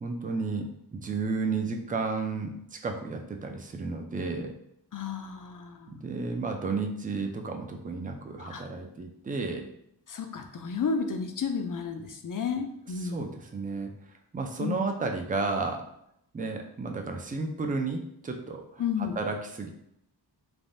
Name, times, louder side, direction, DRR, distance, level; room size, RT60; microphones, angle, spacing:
voice 1, 0.0-4.5 5.9-9.7 13.0-13.9 14.3-15.8 16.3-19.7, right 4 dB, 20° right, 4 dB, 0.4 m, -32 dB
voice 2, 4.9-5.9 8.4-8.6 10.1-13.3 14.6-14.8 18.8-19.2, left 6 dB, 50° left, 5 dB, 0.4 m, -32 dB
3.3 x 2.2 x 2.6 m, 0.75 s
wide cardioid pair, 60°, 43 cm